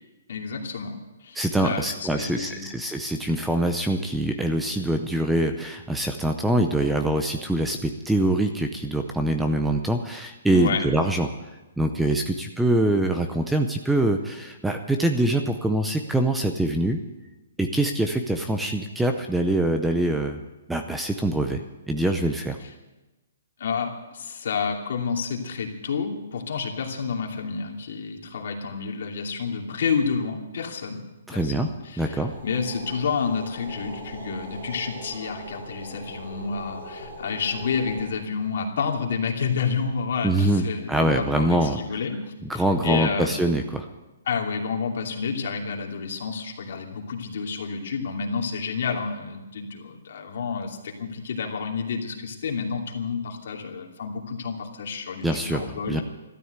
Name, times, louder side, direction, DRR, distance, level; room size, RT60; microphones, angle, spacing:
voice 1, 0.3-1.0 1.2-2.7 10.5-10.9 22.6-22.7 23.6-31.0 31.3-42.2 42.5-43.5 44.3-56.0, left 5 dB, 55° left, 1 dB, 2.8 m, -29 dB
voice 2, 1.3-11.3 11.8-17.0 17.6-20.4 20.7-21.6 21.9-22.6 31.3-31.7 32.0-32.3 40.2-41.8 42.5-43.9 55.2-56.0, right 1 dB, 5° right, 5 dB, 0.6 m, -24 dB
sound 1, 32.3-38.0, right 1 dB, 75° right, 6.7 m, -40 dB
14.0 x 12.5 x 8.1 m, 1.1 s
hypercardioid pair, 165°, 0 cm